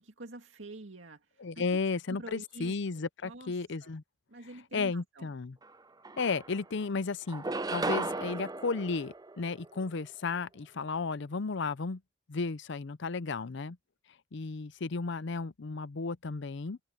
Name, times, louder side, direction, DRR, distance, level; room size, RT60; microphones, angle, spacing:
voice 1, 0.0-1.7 2.1-2.8 3.2-3.9 4.3-5.3, right 2 dB, 70° right, 2.3 m, -47 dB
voice 2, 1.4-4.0 4.7-5.6 6.2-12.0 12.3-13.8 14.3-16.8, left 4 dB, 65° left, 0.6 m, -34 dB
sound 1, 5.6-5.7 6.0-6.8 7.3-9.9, right 3 dB, 20° right, 0.6 m, -36 dB
head